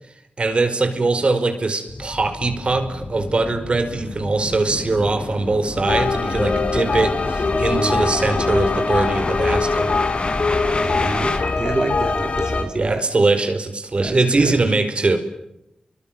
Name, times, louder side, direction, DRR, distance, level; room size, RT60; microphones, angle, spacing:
voice 1, 0.4-9.9 12.7-15.2, right 3 dB, 50° right, 8 dB, 5.0 m, -21 dB
sound 1, 1.9-11.4, left 2 dB, 50° left, 6.5 m, -30 dB
sound 2, 5.9-12.6, left 4 dB, 65° left, 5.7 m, -22 dB
voice 2, 7.7-8.1 10.8-13.0 14.0-14.6, right 2 dB, 30° right, 4 dB, 4.5 m, -27 dB
29.5 x 24.0 x 7.5 m, 0.85 s
wide cardioid pair, 70°, 2 cm